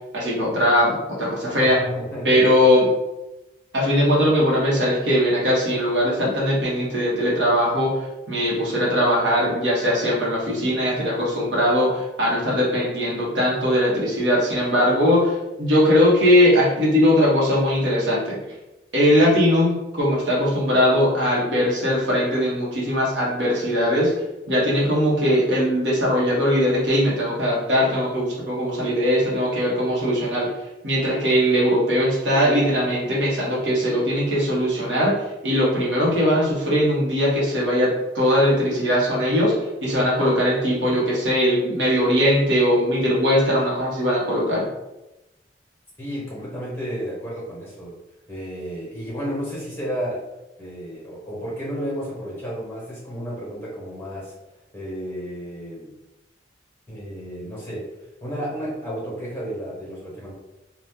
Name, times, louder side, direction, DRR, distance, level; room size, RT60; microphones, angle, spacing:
voice 1, 0.1-1.8 2.2-2.9 3.7-7.9 8.3-18.4 18.9-24.1 24.5-30.5 30.8-35.1 35.4-44.7, equal, 75° right, -4 dB, 1.0 m, -20 dB
voice 2, 1.8-2.4 46.0-47.9 48.3-50.3 50.6-54.3 54.7-55.9 56.9-57.9 58.2-60.3, equal, 15° left, -6 dB, 1.2 m, -32 dB
2.7 x 2.3 x 3.5 m, 0.98 s
head